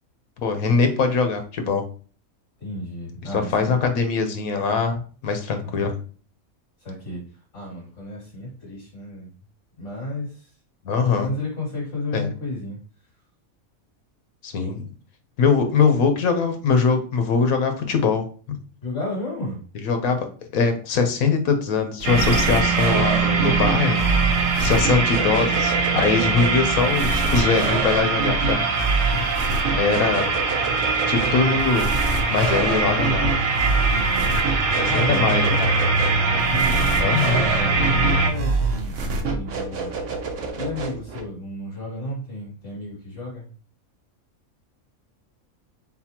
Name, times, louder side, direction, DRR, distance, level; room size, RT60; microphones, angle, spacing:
voice 1, 0.4-1.8 3.3-5.9 10.8-11.3 12.1-12.3 14.4-14.9 15.4-18.6 19.8-20.3 20.5-24.0 24.6-28.7 29.8-30.3 30.7-31.9 32.3-33.4 34.8-35.7 37.0-37.4, left 5 dB, 80° left, 6 dB, 1.3 m, -22 dB
voice 2, 2.6-3.8 5.6-5.9 6.8-9.3 9.8-10.5 11.0-12.8 18.8-19.6 23.5-24.1 24.6-24.9 26.8-26.9 28.9-29.3 29.7-30.4 33.9-34.3 34.9-35.5 36.2-40.1 40.6-43.5, left 2 dB, 55° left, -5 dB, 2.4 m, -33 dB
sound 1, 22.0-41.2, right 3 dB, 65° right, 1.1 m, -27 dB
sound 2, 22.0-38.3, right 4 dB, 80° right, 1.3 m, -22 dB
4.1 x 4.0 x 2.9 m, 0.40 s
omnidirectional pair, 1.5 m